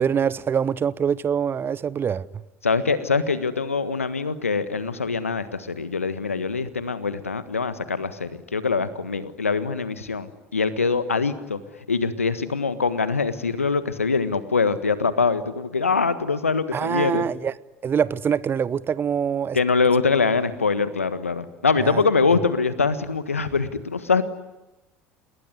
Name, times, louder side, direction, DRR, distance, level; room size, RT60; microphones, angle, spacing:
voice 1, 0.0-2.2 16.7-17.5 17.8-19.6 21.8-22.0, right 7 dB, 30° right, 0.9 m, -24 dB
voice 2, 2.6-11.6 11.9-17.3 19.5-24.2, left 4 dB, 85° left, 1.5 m, -23 dB
28.5 x 21.0 x 9.9 m
figure-of-eight pair, 70°, 7 cm